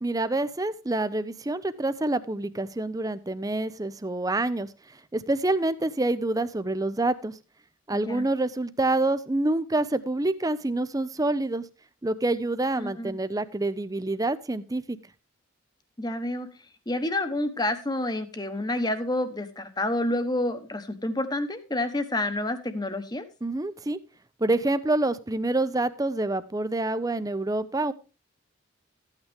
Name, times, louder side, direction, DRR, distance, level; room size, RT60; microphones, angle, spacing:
voice 1, 0.0-7.4 7.9-11.6 12.0-15.0 23.4-24.0 24.4-27.9, right 2 dB, 15° right, 14 dB, 0.6 m, -27 dB
voice 2, 7.9-8.3 12.7-13.2 16.0-16.5 16.9-23.2, left 1 dB, 20° left, 9 dB, 1.1 m, -29 dB
13.5 x 8.9 x 3.5 m, 0.32 s
head